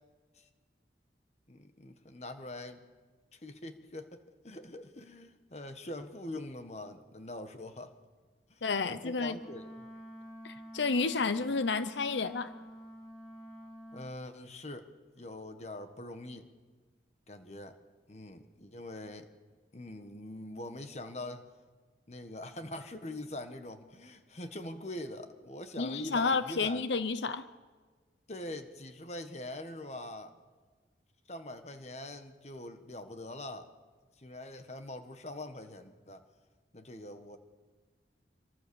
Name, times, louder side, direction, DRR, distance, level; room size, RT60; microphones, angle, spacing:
voice 1, 1.5-2.8 3.3-7.9 8.5-9.9 11.4-11.5 13.9-16.5 17.3-17.8 18.1-19.3 19.7-21.5 22.1-26.8 28.3-30.3 31.3-33.7 34.2-36.2 36.7-37.4, left 1 dB, 40° left, 8 dB, 1.5 m, -43 dB
voice 2, 8.6-9.4 10.4-12.5 25.8-27.5, left 4 dB, 85° left, 13 dB, 0.8 m, -31 dB
Wind instrument woodwind instrument, 9.3-14.1, equal, 5° left, 7.5 m, -48 dB
26.0 x 23.0 x 7.1 m, 1.4 s
head